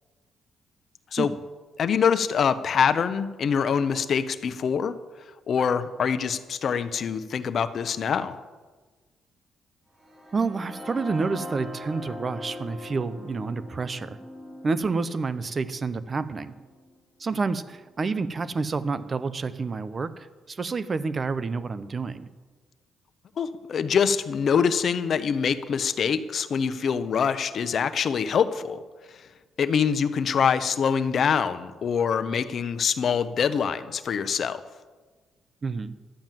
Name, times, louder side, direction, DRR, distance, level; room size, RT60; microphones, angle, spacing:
voice 1, 1.8-4.9 5.5-8.4 23.4-28.8 29.6-34.6, left 7 dB, 55° left, 11 dB, 0.9 m, -24 dB
sound 1, 10.0-17.9, left 1 dB, 20° right, 4.5 m, -42 dB
voice 2, 10.3-14.2 14.6-16.5 17.2-22.3 35.6-35.9, right 4 dB, 35° right, 14 dB, 0.8 m, -29 dB
13.0 x 9.1 x 7.6 m, 1.4 s
cardioid pair, 90°, 0 cm